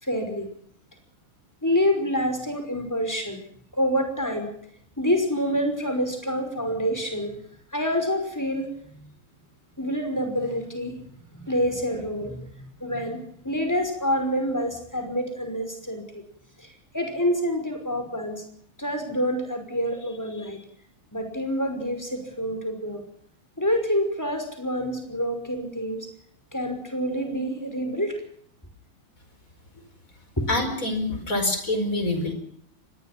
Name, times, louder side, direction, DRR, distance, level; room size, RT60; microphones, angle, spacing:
voice 1, 0.0-0.5 1.6-3.4 3.7-4.5 5.0-7.4 7.7-8.7 8.9-9.1 9.8-11.0 11.3-16.2 16.6-18.4 18.8-20.6 21.1-23.0 23.6-26.1 26.5-28.2 30.4-30.5, equal, 10° left, 6 dB, 5.5 m, -27 dB
voice 2, 30.5-32.3, left 2 dB, 40° left, 8 dB, 5.2 m, -26 dB
24.0 x 20.5 x 6.0 m, 0.68 s
omnidirectional pair, 2.4 m